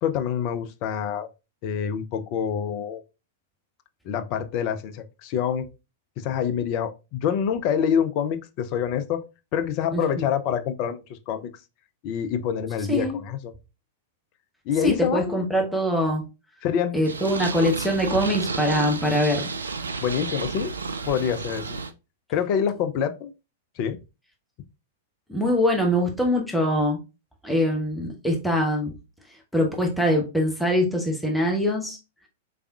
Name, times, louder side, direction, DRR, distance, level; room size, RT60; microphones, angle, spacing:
voice 1, 0.0-1.3 1.6-3.0 4.1-5.7 6.2-9.2 9.5-11.5 12.0-13.5 14.7-15.4 16.6-17.0 20.0-20.7 21.1-21.8 22.3-23.3 23.8-24.0, left 8 dB, 40° left, 0.5 m, -26 dB
voice 2, 12.9-13.2 14.8-16.2 16.9-19.5 25.3-27.0 27.4-28.9 29.5-32.0, equal, ahead, 0.8 m, -23 dB
Purr, 17.0-21.9, right 4 dB, 75° right, 0.4 m, -31 dB
4.0 x 3.4 x 2.3 m
figure-of-eight pair, 100°, 0 cm